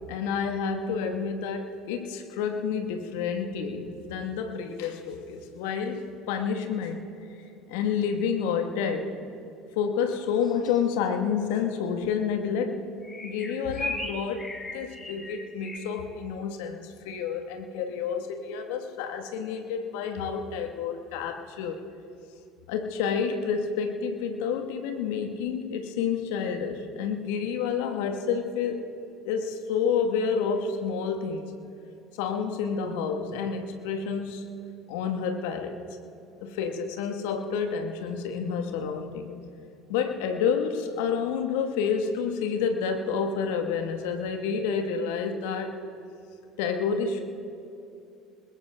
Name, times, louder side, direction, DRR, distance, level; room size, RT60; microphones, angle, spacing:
voice 1, 0.1-7.1 7.7-9.1 9.8-12.8 13.2-21.8 22.7-28.8 29.2-31.5 32.2-34.4 34.9-35.8 36.4-39.3 39.9-45.8 46.6-47.2, left 6 dB, 70° left, 5 dB, 1.2 m, -29 dB
sound 1, 10.4-10.8 13.0-15.8, left 2 dB, 25° left, 3.0 m, -36 dB
27.5 x 20.5 x 2.2 m, 2.6 s
hypercardioid pair, 65°, 0 cm